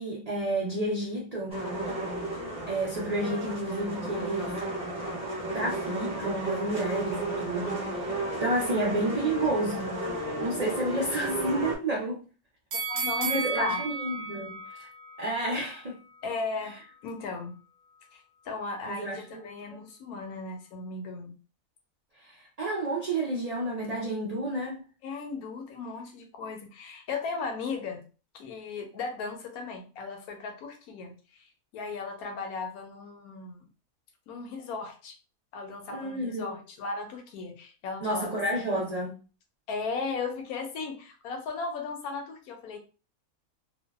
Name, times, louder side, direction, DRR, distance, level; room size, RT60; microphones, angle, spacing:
voice 1, 0.0-1.6 2.7-4.6 5.5-8.1 8.4-10.0 10.4-12.2 13.2-14.9 15.2-16.0 18.9-19.4 22.2-24.8 35.9-36.6 38.0-39.2, right 1 dB, 75° right, 0.3 m, -30 dB
sound 1, 1.5-11.7, right 1 dB, 5° right, 0.5 m, -33 dB
sound 2, 12.7-15.8 16.2-16.3, right 5 dB, 60° right, 0.7 m, -33 dB
voice 2, 12.9-13.8 16.2-16.8 17.0-17.5 18.1-21.3 25.0-28.0 28.3-33.7 34.3-35.1 35.5-38.4 39.7-42.8, left 4 dB, 80° left, 1.1 m, -36 dB
2.6 x 2.1 x 2.2 m
omnidirectional pair, 1.6 m